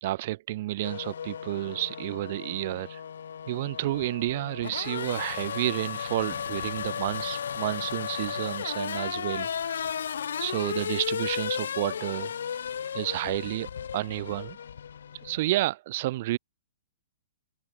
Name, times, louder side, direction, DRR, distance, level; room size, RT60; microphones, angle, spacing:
voice 1, 0.0-3.0 3.5-9.9 10.4-12.3 12.9-14.6 15.2-16.4, right 16 dB, 45° right, 0.6 m, -30 dB
Race car auto racing / Accelerating revving vroom, 0.8-15.6, left 8 dB, 80° left, 1.3 m, -35 dB
hypercardioid pair, 155°, 0 cm